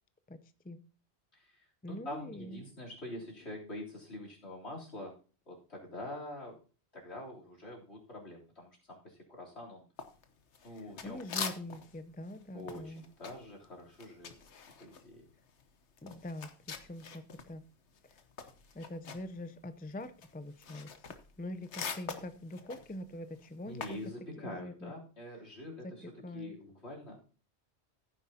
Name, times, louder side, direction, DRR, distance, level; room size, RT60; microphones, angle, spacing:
voice 1, 0.3-0.8 1.8-2.6 11.0-13.0 16.0-17.7 18.7-20.9 21.4-24.0 24.4-24.9 25.8-25.9 26.2-26.5, left 1 dB, 15° left, 0.4 m, -44 dB
voice 2, 1.3-5.1 5.5-6.6 6.9-9.9 10.6-11.4 12.5-14.5 14.8-15.3 23.6-27.2, left 1 dB, 70° left, 3.7 m, -45 dB
sound 1, 10.0-12.0 12.3-17.5 17.8-24.1, left 6 dB, 85° left, 1.3 m, -44 dB
15.0 x 9.5 x 2.8 m
omnidirectional pair, 1.1 m